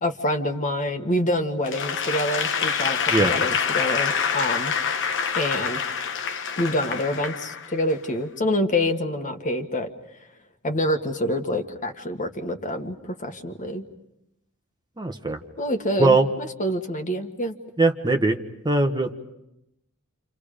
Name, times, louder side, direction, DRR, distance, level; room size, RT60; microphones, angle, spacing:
voice 1, 0.0-4.7 5.3-5.8 6.6-9.9 10.6-13.8 15.6-17.5, left 1 dB, 35° left, 5 dB, 1.7 m, -26 dB
Applause / Crowd, 1.6-8.0, left 6 dB, 55° left, 1.1 m, -26 dB
voice 2, 15.0-15.4 16.0-16.2 17.8-18.4 18.6-19.1, right 2 dB, 20° right, 5 dB, 1.2 m, -20 dB
29.0 x 28.0 x 5.1 m, 0.86 s
head